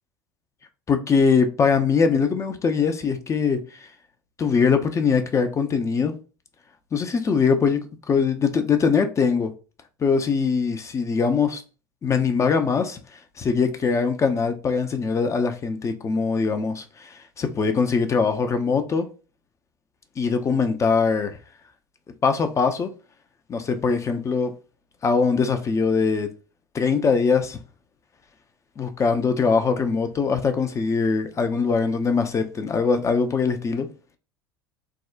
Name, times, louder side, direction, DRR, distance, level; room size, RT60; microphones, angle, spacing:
voice 1, 0.9-3.9 4.4-6.1 6.9-9.5 10.0-11.6 12.0-13.0 13.4-19.1 20.2-21.4 22.2-22.9 23.5-24.5 25.0-26.3 26.7-27.6 28.8-33.9, left 5 dB, 25° left, 0.4 m, -22 dB
3.5 x 2.1 x 2.4 m
figure-of-eight pair, 75°, 13 cm